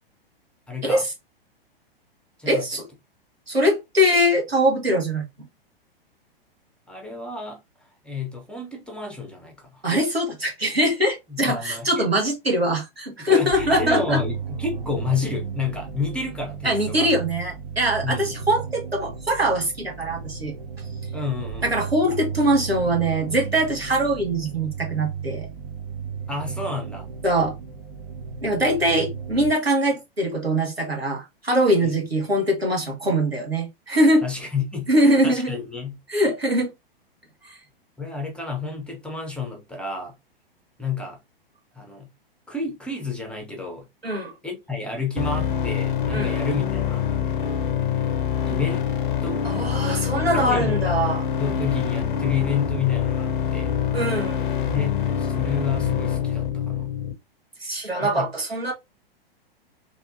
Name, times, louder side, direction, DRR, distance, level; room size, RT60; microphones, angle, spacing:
voice 1, 0.7-1.0 2.4-2.7 6.9-7.6 8.0-9.8 11.3-12.1 13.2-17.1 18.0-18.3 21.1-21.7 26.3-27.1 31.8-31.9 34.2-36.0 38.0-40.1 40.8-41.2 41.8-42.1 42.5-43.9 44.4-47.0 48.4-48.9 49.2-49.5 50.3-50.8 51.4-53.7 54.7-56.9 58.0-58.3, left 4 dB, 5° left, 0.5 m, -30 dB
voice 2, 2.5-2.9 3.5-5.2 9.8-14.2 16.6-20.5 21.6-25.5 27.2-27.5 28.4-34.2 34.9-35.5 36.1-36.7 37.4-37.6 44.0-44.3 46.1-46.3 49.4-51.3 53.9-54.5 57.6-58.7, equal, 85° right, 1.2 m, -22 dB
sound 1, 13.5-29.5, right 6 dB, 60° right, 0.8 m, -34 dB
sound 2, 45.2-57.1, left 8 dB, 60° left, 0.6 m, -25 dB
3.5 x 2.6 x 2.5 m
figure-of-eight pair, 105°, 30 cm